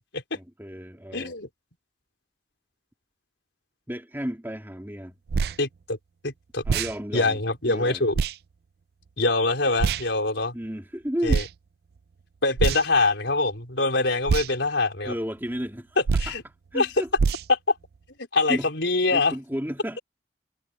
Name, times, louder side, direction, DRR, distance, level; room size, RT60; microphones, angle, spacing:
voice 1, 0.3-1.4 3.9-5.1 6.6-8.0 10.5-11.4 15.0-16.4 16.7-17.1 18.5-18.7 19.1-20.0, equal, 10° right, 3.0 m, -33 dB
voice 2, 1.1-1.5 5.6-6.0 6.2-6.6 7.1-8.2 9.2-10.5 11.2-11.4 12.4-15.1 16.2-16.4 16.7-16.9 17.5-17.6 18.3-19.3, left 3 dB, 90° left, 4.7 m, -24 dB
sound 1, 5.3-5.6 6.6-6.9 8.1-8.4 9.8-10.1 11.3-11.5 12.6-13.0 14.3-14.5 16.1-16.4 17.2-17.5, right 5 dB, 60° right, 0.4 m, -24 dB
head